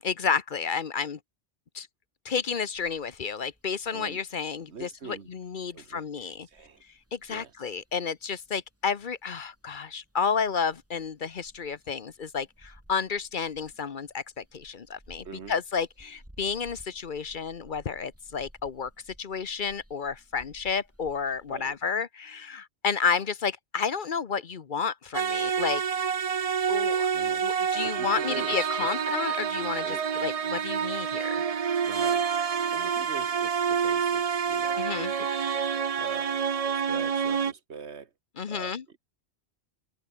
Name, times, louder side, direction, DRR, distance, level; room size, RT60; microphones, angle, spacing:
voice 1, 0.0-1.2 1.7-1.9 2.2-6.5 7.1-18.9 19.2-25.8 26.7-27.1 27.4-30.0 30.2-31.4 34.8-35.1 38.4-38.8, left 6 dB, 50° left, 1.0 m, -31 dB
sound 1, 2.3-21.9, equal, 10° right, 5.1 m, -58 dB
voice 2, 3.9-4.2 4.7-5.3 5.7-6.8 7.3-7.5 15.2-15.5 21.5-21.8 27.1-27.5 27.8-28.9 29.8-30.1 31.8-32.3 32.7-34.9 35.2-35.3 36.0-36.3 36.7-38.1 38.5-39.0, right 6 dB, 85° right, 1.8 m, -42 dB
sound 2, 25.1-37.5, right 7 dB, 40° right, 0.6 m, -28 dB
omnidirectional pair, 1.1 m